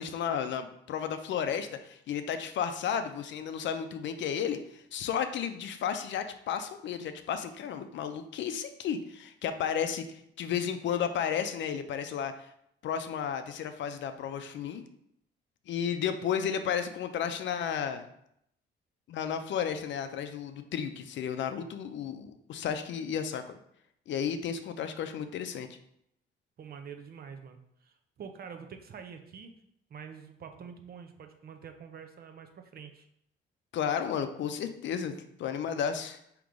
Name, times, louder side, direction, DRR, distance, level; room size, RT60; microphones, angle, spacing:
voice 1, 0.0-12.5 12.8-14.8 15.7-18.1 19.1-23.6 24.1-25.7 33.7-36.2, left 8 dB, 70° left, 9 dB, 0.5 m, -33 dB
voice 2, 26.6-29.5 29.9-33.1, right 7 dB, 50° right, 6 dB, 0.7 m, -46 dB
3.7 x 3.0 x 4.8 m, 0.74 s
cardioid pair, 90°, 20 cm